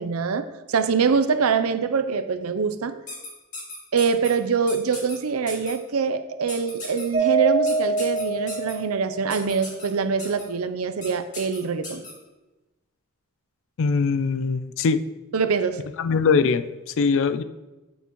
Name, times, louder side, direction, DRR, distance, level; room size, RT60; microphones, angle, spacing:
voice 1, 0.0-2.9 3.9-12.0 15.3-15.8, right 5 dB, 80° right, 11 dB, 0.5 m, -24 dB
sound 1, 3.1-4.3 4.7-5.2 5.5-5.7 6.5-7.0 7.7-8.7 9.3-9.9 10.2-10.4 11.0-11.1 11.3-12.1, left 2 dB, 40° left, 1.8 m, -36 dB
Mallet percussion, 7.1-9.4, right 4 dB, 30° right, 1.5 m, -24 dB
voice 2, 13.8-15.0 16.0-17.4, left 5 dB, 65° left, 12 dB, 0.4 m, -22 dB
8.5 x 6.9 x 3.0 m, 1.1 s
head